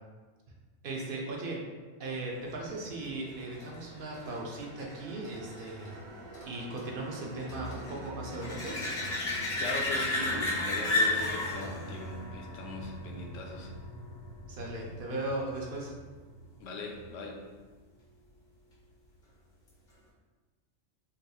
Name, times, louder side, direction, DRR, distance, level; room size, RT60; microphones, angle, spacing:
voice 1, 0.8-1.6 2.0-5.9 6.4-8.8 14.5-15.9, right 2 dB, 55° right, -1 dB, 0.7 m, -37 dB
sound 1, 2.8-14.0 19.7-19.8, left 2 dB, 45° left, 0.8 m, -34 dB
sound 2, 3.0-18.2, right 1 dB, 90° right, 1.2 m, -47 dB
voice 2, 9.6-13.7 16.6-17.4, left 2 dB, 85° left, 1 dB, 0.9 m, -39 dB
3.7 x 2.8 x 2.3 m, 1.4 s
omnidirectional pair, 1.3 m